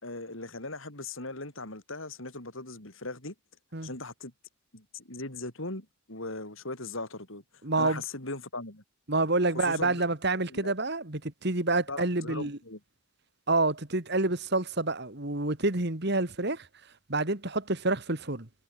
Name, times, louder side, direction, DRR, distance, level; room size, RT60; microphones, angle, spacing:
voice 1, 0.0-3.3 3.8-4.3 4.7-7.4 7.8-8.8 9.6-10.0 10.5-10.7 11.9-12.8, left 2 dB, 65° left, 4.6 m, -39 dB
voice 2, 7.6-8.0 9.1-12.6 13.5-16.7 17.1-18.5, right 2 dB, 50° right, 2.3 m, -28 dB
head